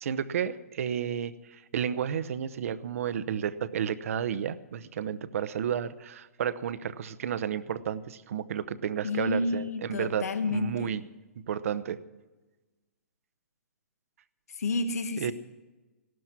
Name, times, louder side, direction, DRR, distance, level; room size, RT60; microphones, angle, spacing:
voice 1, 0.0-11.0 11.5-12.0 15.2-15.3, right 8 dB, 60° right, 15 dB, 0.8 m, -32 dB
voice 2, 9.0-10.9 14.5-15.3, left 3 dB, 75° left, 9 dB, 1.2 m, -30 dB
16.0 x 12.5 x 5.9 m, 1.2 s
hypercardioid pair, 140°, 8 cm